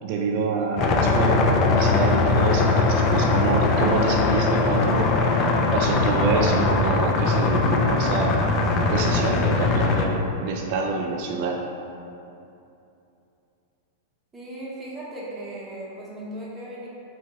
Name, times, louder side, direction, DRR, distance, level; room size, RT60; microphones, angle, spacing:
voice 1, 0.0-5.1 5.7-8.4 8.8-11.6, right 4 dB, 55° right, 1 dB, 0.3 m, -26 dB
sound 1, 0.8-10.1, left 3 dB, 40° left, 0.3 m, -21 dB
voice 2, 14.3-16.9, right 1 dB, 15° right, -7 dB, 0.8 m, -37 dB
2.9 x 2.7 x 2.8 m, 2.7 s
hypercardioid pair, 115°, 0 cm